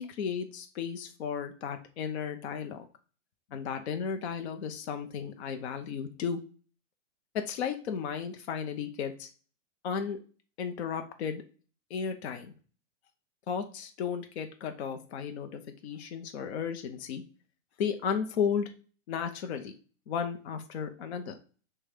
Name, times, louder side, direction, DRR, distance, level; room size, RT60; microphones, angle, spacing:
voice 1, 0.0-2.9 3.5-6.4 7.3-9.3 9.8-10.2 10.6-11.4 11.9-12.5 13.5-17.2 17.8-18.7 19.1-19.7 20.1-21.4, left 7 dB, 60° left, 6 dB, 0.7 m, -34 dB
6.3 x 2.3 x 3.5 m, 0.38 s
supercardioid pair, 165°, 38 cm